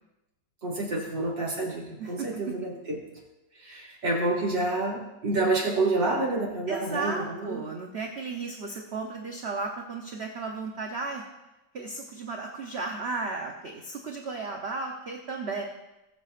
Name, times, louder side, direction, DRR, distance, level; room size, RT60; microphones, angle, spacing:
voice 1, 0.6-3.0 3.6-7.6, right 2 dB, 80° right, -4 dB, 3.4 m, -28 dB
voice 2, 6.7-11.2 11.7-15.6, right 3 dB, 45° right, 2 dB, 0.9 m, -34 dB
20.0 x 8.0 x 2.5 m, 0.99 s
omnidirectional pair, 1.9 m